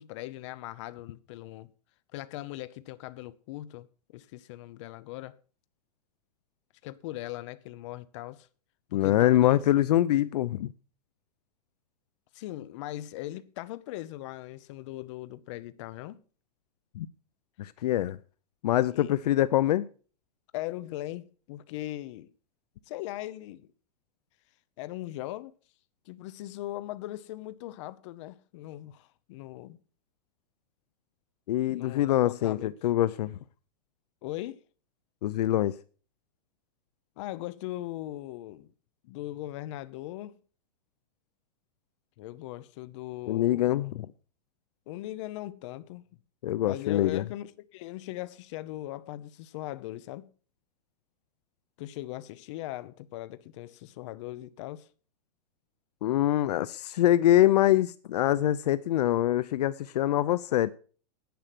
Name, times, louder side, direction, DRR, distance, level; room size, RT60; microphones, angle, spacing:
voice 1, 0.0-1.7 2.1-3.9 4.1-5.4 6.8-8.5 8.9-9.6 12.3-16.2 18.9-19.2 20.5-22.3 22.9-23.7 24.8-25.5 26.1-29.8 31.7-32.7 34.2-34.6 37.2-38.7 39.0-40.4 42.2-43.9 44.9-46.1 46.6-50.3 51.8-54.9, left 15 dB, 45° left, 0.9 m, -39 dB
voice 2, 8.9-10.7 16.9-17.1 17.6-18.2 18.6-19.9 31.5-33.4 35.2-35.8 43.3-44.1 46.4-47.2 56.0-60.7, left 13 dB, 75° left, 0.6 m, -24 dB
10.5 x 8.9 x 6.0 m
supercardioid pair, 160°, 21 cm